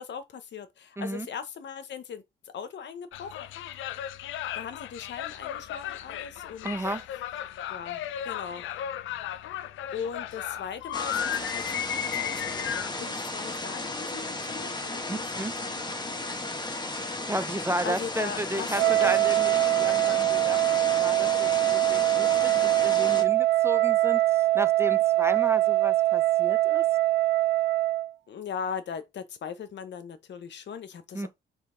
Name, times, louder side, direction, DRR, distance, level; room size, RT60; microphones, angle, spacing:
voice 1, 0.0-2.2 2.5-3.5 4.5-6.9 7.7-8.8 9.1-9.2 9.9-15.3 15.6-15.9 17.8-19.1 28.3-31.3, left 7 dB, 65° left, 0.8 m, -39 dB
voice 2, 1.0-1.3 6.6-7.1 15.1-15.5 16.7-22.5 22.8-26.8 31.1-31.3, right 1 dB, 15° right, 0.4 m, -33 dB
sound 1, 3.1-12.9, left 11 dB, 85° left, 0.5 m, -35 dB
sound 2, 10.9-23.2, left 2 dB, 20° left, 1.1 m, -34 dB
Wind instrument woodwind instrument, 18.7-28.1, right 16 dB, 85° right, 0.5 m, -23 dB
4.4 x 3.0 x 3.7 m
cardioid pair, 80°, 20 cm